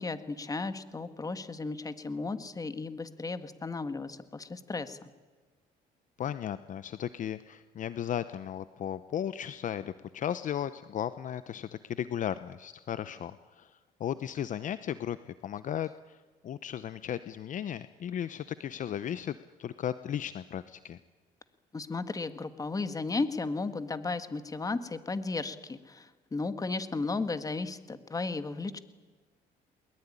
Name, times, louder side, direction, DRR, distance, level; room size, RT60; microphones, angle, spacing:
voice 1, 0.0-5.1 21.7-28.8, left 3 dB, 20° left, 11 dB, 1.8 m, -34 dB
voice 2, 6.2-16.2 16.4-21.0, left 10 dB, 50° left, 14 dB, 0.8 m, -35 dB
22.0 x 21.5 x 9.9 m, 1.3 s
cardioid pair, 110°, 17 cm